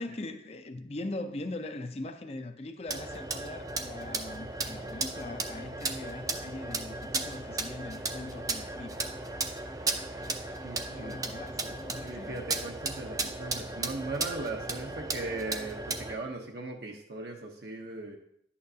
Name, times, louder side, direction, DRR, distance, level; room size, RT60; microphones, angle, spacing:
voice 1, 0.0-9.2 10.9-12.4, left 2 dB, 35° left, 0.6 m, -41 dB
sound 1, 2.9-16.1, right 3 dB, 20° right, 0.5 m, -35 dB
voice 2, 10.6-11.1 12.0-18.2, right 2 dB, 70° right, 1.0 m, -38 dB
11.0 x 8.5 x 2.8 m
head